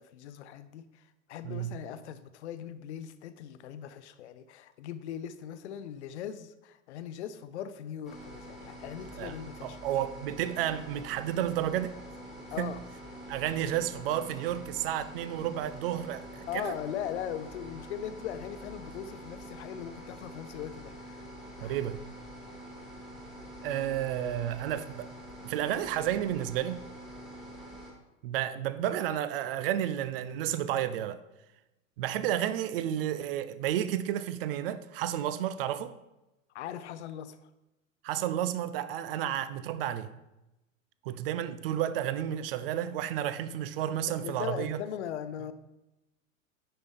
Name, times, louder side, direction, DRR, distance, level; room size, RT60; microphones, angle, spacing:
voice 1, 0.0-9.8 12.5-12.8 16.5-21.3 21.6-21.8 36.5-37.5 44.1-45.5, left 10 dB, 55° left, 0.6 m, -40 dB
sound 1, 8.0-27.9, equal, ahead, 1.8 m, -46 dB
voice 2, 9.6-12.0 12.6-12.7 13.3-16.7 21.6-22.0 23.6-25.1 25.4-26.8 28.2-31.2 32.0-35.9 38.0-40.1 41.0-44.8, right 11 dB, 45° right, 0.5 m, -31 dB
9.9 x 5.0 x 3.6 m
figure-of-eight pair, 95°, 40 cm